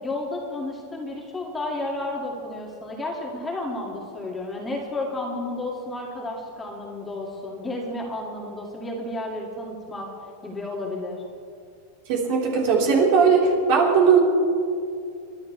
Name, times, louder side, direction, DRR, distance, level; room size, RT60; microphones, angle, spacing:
voice 1, 0.0-10.1 10.4-11.2, left 2 dB, 10° left, -2 dB, 2.4 m, -32 dB
voice 2, 12.1-14.2, right 5 dB, 60° right, -3 dB, 4.2 m, -18 dB
29.5 x 11.5 x 3.4 m, 2.4 s
supercardioid pair, 135°, 0 cm